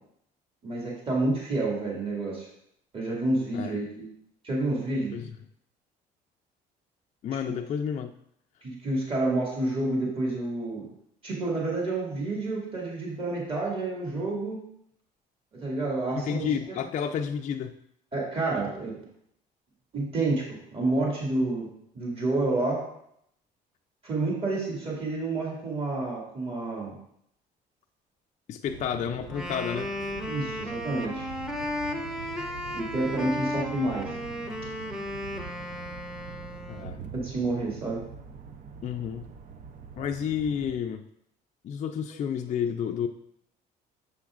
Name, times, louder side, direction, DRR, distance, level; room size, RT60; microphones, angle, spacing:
voice 1, 0.6-2.5 2.9-4.1 4.4-5.2 8.6-10.9 11.2-14.6 15.6-16.8 18.1-19.0 19.9-21.7 21.9-22.9 24.0-27.0 30.3-31.3 32.7-34.2 37.1-38.0, right 2 dB, 35° right, -4 dB, 2.1 m, -29 dB
voice 2, 7.2-8.1 16.1-17.7 28.5-30.1 36.7-37.0 38.8-39.2 40.0-41.0 41.6-43.1, left 8 dB, 45° left, 4 dB, 0.4 m, -31 dB
sound 1, 28.7-40.8, right 6 dB, 50° right, 0.6 m, -44 dB
Wind instrument woodwind instrument, 29.3-37.0, left 1 dB, 5° right, 0.7 m, -34 dB
7.0 x 6.7 x 2.4 m, 0.73 s
cardioid pair, 110°, 17 cm